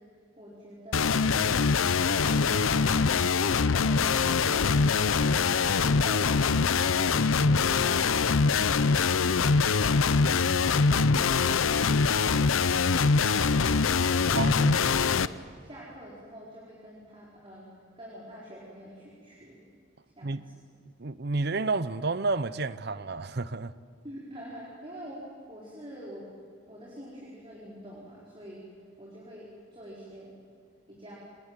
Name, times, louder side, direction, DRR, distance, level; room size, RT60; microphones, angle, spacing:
voice 1, 0.0-1.3 1.7-6.3 6.8-8.2 14.1-15.0 15.3-17.7 18.0-19.6 20.2-20.6 24.0-26.3 26.7-28.6 29.0-30.3 30.9-31.2, equal, 25° right, 4.8 m, -46 dB
sound 1, 0.9-15.3, left 5 dB, 90° left, 0.7 m, -24 dB
voice 2, 14.4-14.8 20.2-20.4 21.0-23.7, right 3 dB, 55° right, 0.8 m, -30 dB
26.5 x 20.5 x 9.0 m
head